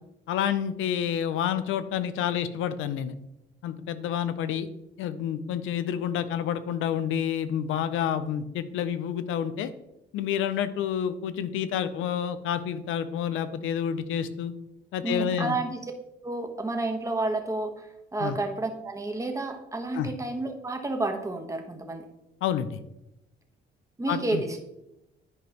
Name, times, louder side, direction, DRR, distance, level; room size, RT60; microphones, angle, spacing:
voice 1, 0.3-3.1 3.6-4.7 5.0-9.7 10.1-14.5 14.9-15.6 18.2-18.4 19.9-20.1 22.4-22.8 24.1-24.4, left 9 dB, 85° left, 13 dB, 0.6 m, -29 dB
voice 2, 15.0-15.8 16.2-22.1 24.0-24.6, right 2 dB, 15° right, 4 dB, 1.2 m, -30 dB
11.0 x 5.1 x 2.9 m, 0.89 s
cardioid pair, 90°, 20 cm